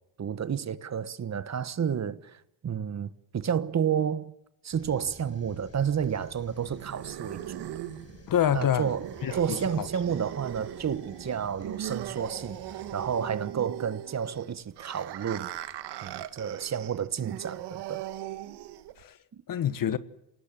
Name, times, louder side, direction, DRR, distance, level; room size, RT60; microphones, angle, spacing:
voice 1, 0.2-4.3 4.6-7.7 8.5-18.0 19.3-19.4, right 8 dB, 40° right, 1.3 m, -31 dB
sound 1, 4.7-13.3, left 4 dB, 35° left, 3.6 m, -52 dB
sound 2, 6.0-19.0, right 13 dB, 80° right, 1.6 m, -40 dB
voice 2, 8.3-8.9 9.2-9.9 19.0-19.2 19.5-20.0, left 10 dB, 55° left, 1.3 m, -27 dB
28.0 x 19.0 x 7.5 m
cardioid pair, 85°, 40 cm